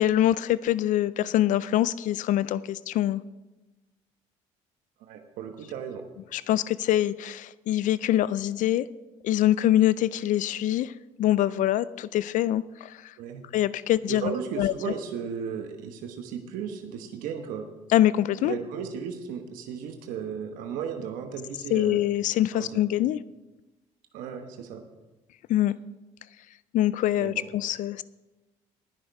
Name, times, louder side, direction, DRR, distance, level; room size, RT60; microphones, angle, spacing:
voice 1, 0.0-3.2 6.3-8.9 9.2-10.9 11.2-13.1 13.5-14.9 17.9-18.6 21.7-23.2 25.5-25.7 26.7-28.0, left 13 dB, 70° left, 18 dB, 0.4 m, -24 dB
voice 2, 5.0-6.0 13.2-13.4 14.1-17.7 18.4-22.0 22.5-22.8 24.1-24.8 27.2-27.4, right 7 dB, 85° right, 5 dB, 1.1 m, -35 dB
19.5 x 6.5 x 4.7 m, 1.1 s
cardioid pair, 85°, 14 cm